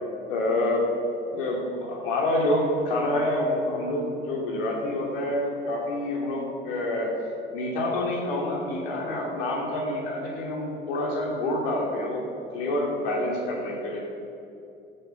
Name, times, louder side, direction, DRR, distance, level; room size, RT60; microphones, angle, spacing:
voice 1, 0.3-0.9 1.3-7.2 7.5-12.3 12.5-14.0, left 1 dB, 70° left, -2 dB, 2.5 m, -27 dB
14.0 x 8.1 x 7.5 m, 2.6 s
figure-of-eight pair, 55°, 29 cm